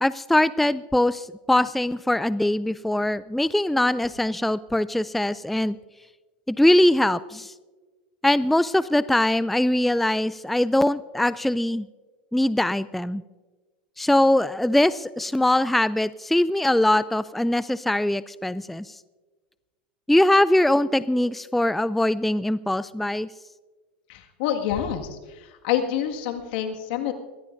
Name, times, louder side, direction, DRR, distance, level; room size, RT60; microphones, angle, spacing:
voice 1, 0.0-5.8 6.5-7.5 8.2-11.9 12.3-13.2 14.0-19.0 20.1-23.3, left 1 dB, ahead, 17 dB, 0.3 m, -22 dB
voice 2, 24.1-25.2 25.6-27.1, left 10 dB, 65° left, 4 dB, 1.8 m, -27 dB
22.0 x 16.0 x 2.6 m, 1.3 s
hypercardioid pair, 95°, 6 cm